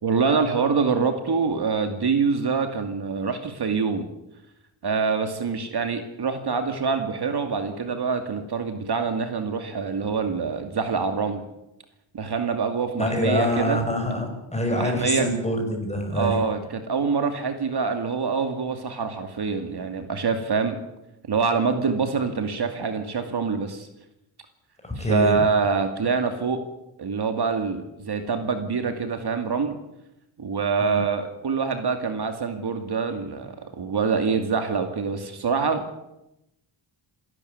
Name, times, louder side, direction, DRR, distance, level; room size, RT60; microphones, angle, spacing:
voice 1, 0.0-4.1 4.8-11.4 12.1-13.8 14.8-15.4 16.1-20.8 21.3-23.9 25.0-26.6 27.0-29.8 30.4-36.0, right 5 dB, 50° right, 7 dB, 2.5 m, -25 dB
voice 2, 13.0-16.4 24.8-25.4 30.8-31.0, equal, 15° left, 3 dB, 5.8 m, -25 dB
28.0 x 12.5 x 9.4 m, 0.88 s
wide cardioid pair, 150°, 49 cm